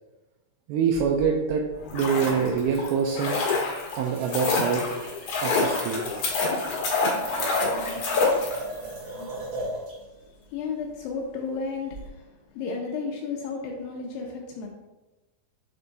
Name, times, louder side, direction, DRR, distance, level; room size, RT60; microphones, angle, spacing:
voice 1, 0.7-1.6 1.9-3.4 4.0-4.8 5.4-6.1, right 6 dB, 85° right, 1 dB, 2.2 m, -25 dB
sound 1, 0.9-1.9 2.3-2.9 3.5-10.0 11.9-12.1, right 2 dB, 50° right, 3.3 m, -38 dB
sound 2, 1.8-8.9 9.2-9.3, left 3 dB, 60° left, 2.2 m, -27 dB
voice 2, 8.7-9.2 10.1-14.7, left 4 dB, 80° left, 0 dB, 2.1 m, -34 dB
7.1 x 3.5 x 3.9 m, 1.1 s
omnidirectional pair, 4.9 m